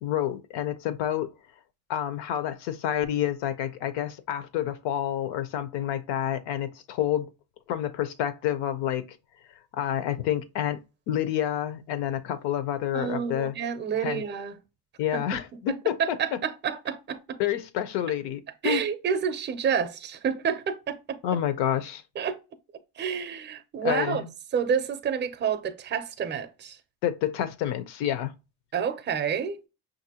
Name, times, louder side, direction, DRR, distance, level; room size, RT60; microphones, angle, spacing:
voice 1, 0.0-1.3 1.9-7.3 7.7-9.2 9.7-13.5 14.0-14.2 15.0-16.4 17.4-18.8 21.2-22.0 23.8-24.3 27.0-28.3, left 11 dB, 75° left, 0.7 m, -29 dB
voice 2, 12.9-14.6 15.1-17.4 18.6-21.2 22.2-22.4 23.0-24.2 24.5-26.8 28.7-29.6, right 7 dB, 25° right, 0.6 m, -29 dB
5.9 x 2.6 x 2.8 m
cardioid pair, 130°, 42 cm